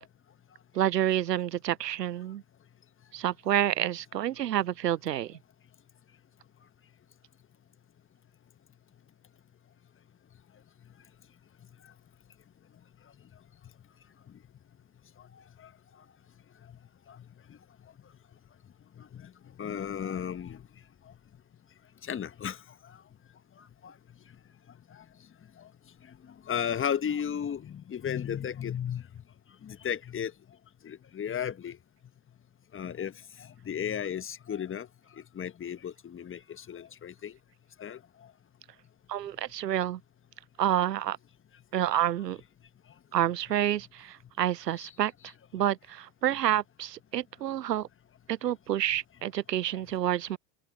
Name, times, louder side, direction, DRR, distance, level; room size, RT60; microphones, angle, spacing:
voice 1, 0.7-2.4 3.1-5.4 39.1-40.0 40.6-41.2 41.7-42.4 43.1-45.1 45.5-47.9 48.3-50.4, right 11 dB, 90° right, 0.6 m, -28 dB
voice 2, 19.0-19.3 19.6-20.6 22.0-22.6 22.9-23.0 23.8-23.9 24.9-25.0 25.6-25.7 26.5-29.0 29.6-30.3 30.8-31.8 32.7-33.1 33.4-34.9 35.3-37.3 37.8-38.0, left 8 dB, 25° left, 1.5 m, -34 dB
open air
figure-of-eight pair, 75°, 47 cm